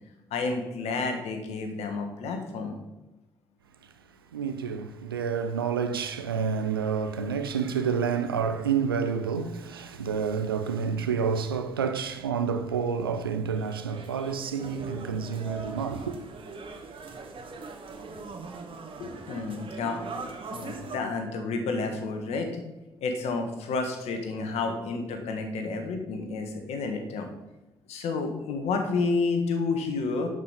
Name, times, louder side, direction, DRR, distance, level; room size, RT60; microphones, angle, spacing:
voice 1, 0.3-2.8 19.0-22.6 23.0-27.3 27.9-30.3, left 4 dB, 65° left, 1.7 m, -30 dB
voice 2, 4.3-16.2, right 6 dB, 90° right, 0.5 m, -29 dB
sound 1, 13.0-21.0, right 4 dB, 50° right, 1.9 m, -41 dB
11.0 x 5.5 x 5.3 m
figure-of-eight pair, 40°, 12 cm